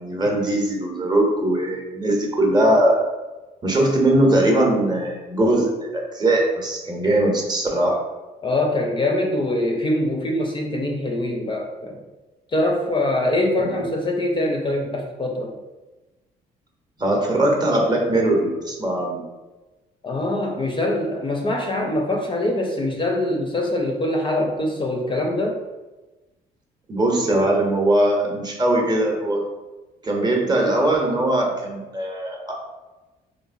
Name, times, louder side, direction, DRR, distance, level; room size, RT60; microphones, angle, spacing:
voice 1, 0.0-3.0 3.6-8.0 13.6-13.8 17.0-19.2 26.9-29.4 30.0-32.5, right 1 dB, 25° right, 0 dB, 0.7 m, -20 dB
voice 2, 8.4-12.0 12.5-15.5 20.0-25.6, left 1 dB, 30° left, 0 dB, 0.4 m, -23 dB
3.0 x 2.1 x 2.5 m, 1.1 s
supercardioid pair, 75°, 17 cm